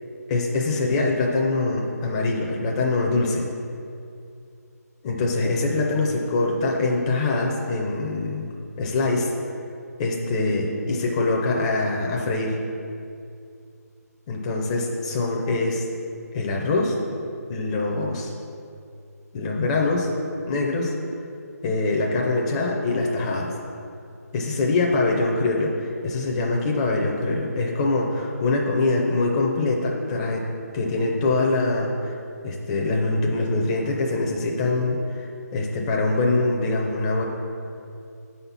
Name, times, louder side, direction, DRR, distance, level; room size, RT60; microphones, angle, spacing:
voice 1, 0.3-3.5 5.0-8.5 8.8-9.3 10.0-12.6 14.3-15.8 16.3-17.0 17.5-18.3 19.3-20.1 20.5-20.9 21.6-23.5 24.3-30.5 30.7-32.1 32.4-37.2, left 2 dB, 20° left, -1 dB, 0.5 m, -24 dB
5.2 x 4.1 x 5.7 m, 2.5 s
figure-of-eight pair, 155°, 9 cm